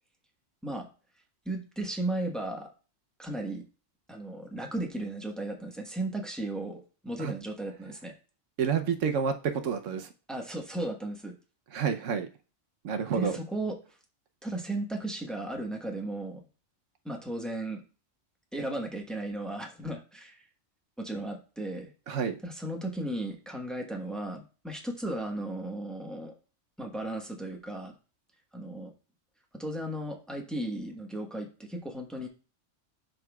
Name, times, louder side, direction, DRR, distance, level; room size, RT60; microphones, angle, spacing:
voice 1, 1.4-2.7 3.2-3.6 4.1-8.1 10.3-11.3 13.1-13.8 14.4-16.4 17.0-17.8 18.5-20.5 21.0-21.9 22.4-26.3 26.8-27.9 28.5-28.9 29.5-32.3, right 1 dB, ahead, 1 dB, 1.1 m, -35 dB
voice 2, 8.6-10.1 11.7-12.3 12.8-13.4 22.1-22.3, right 6 dB, 85° right, 7 dB, 1.1 m, -29 dB
12.0 x 4.0 x 2.3 m, 0.35 s
omnidirectional pair, 1.2 m